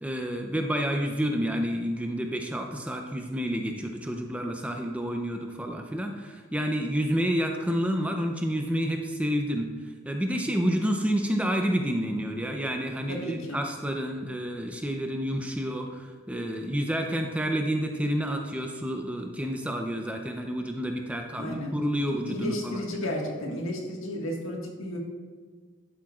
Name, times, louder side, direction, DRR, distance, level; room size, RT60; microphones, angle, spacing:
voice 1, 0.0-23.1, equal, 5° right, 3 dB, 0.5 m, -29 dB
voice 2, 13.1-13.6 21.4-21.7 22.3-25.0, left 1 dB, 70° left, -1 dB, 1.8 m, -33 dB
11.5 x 9.1 x 2.4 m, 1.5 s
head